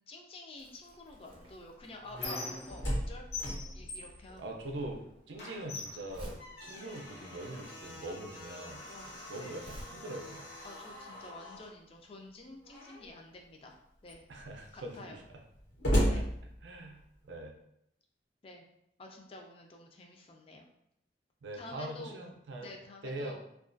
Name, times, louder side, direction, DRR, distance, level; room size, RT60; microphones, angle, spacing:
voice 1, 0.1-3.3 3.7-4.6 8.3-8.4 8.9-9.7 10.6-14.3 14.7-15.2 16.1-16.3 18.4-18.6 19.0-20.7 21.5-22.2 22.6-23.4, left 2 dB, 30° left, 2 dB, 0.3 m, -49 dB
Crumpling crinkling, 0.6-9.8, equal, 30° right, 0.5 m, -53 dB
Squeak, 1.3-3.0 3.3-5.0 5.4-7.1 7.8-8.0 8.3-9.3, left 3 dB, 70° left, 0.7 m, -44 dB
Slam, 2.5-5.2 5.5-5.6 6.1-11.7 12.6-13.2 13.7-13.8 14.0-17.1, equal, 90° left, 1.0 m, -37 dB
voice 2, 4.4-5.0 5.3-8.8 9.3-10.4 14.3-15.2 16.6-17.5 21.4-22.7 23.0-23.4, right 1 dB, 85° right, 2 dB, 0.5 m, -42 dB
2.3 x 2.2 x 2.5 m, 0.77 s
head